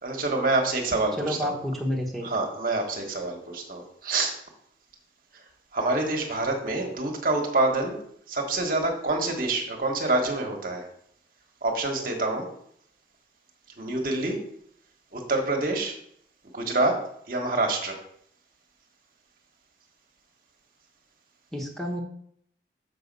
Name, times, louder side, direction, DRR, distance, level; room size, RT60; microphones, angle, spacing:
voice 1, 0.0-1.5 2.2-4.4 5.3-5.4 5.7-8.0 8.3-10.9 11.6-12.5 13.8-14.4 15.1-16.0 16.5-18.0, right 2 dB, 50° right, 2 dB, 1.4 m, -27 dB
voice 2, 1.2-2.3 21.5-22.0, equal, ahead, -1 dB, 1.1 m, -29 dB
6.9 x 5.6 x 5.4 m, 0.68 s
head